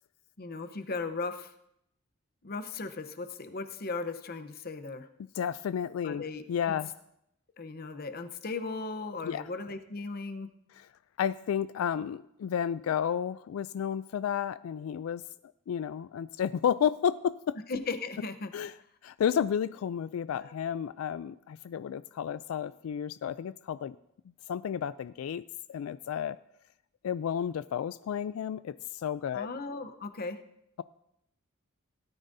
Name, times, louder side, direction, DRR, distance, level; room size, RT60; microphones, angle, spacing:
voice 1, 0.4-1.5 2.4-5.1 6.0-6.8 7.6-10.5 17.7-18.5 20.3-20.5 29.3-30.4, left 3 dB, 45° left, 9 dB, 0.8 m, -37 dB
voice 2, 5.3-6.2 6.5-6.9 9.2-9.5 11.2-15.2 15.7-17.6 18.5-18.7 19.0-24.0 24.5-26.4 27.0-29.5, left 8 dB, 90° left, 15 dB, 0.3 m, -32 dB
17.5 x 12.5 x 2.7 m, 0.78 s
head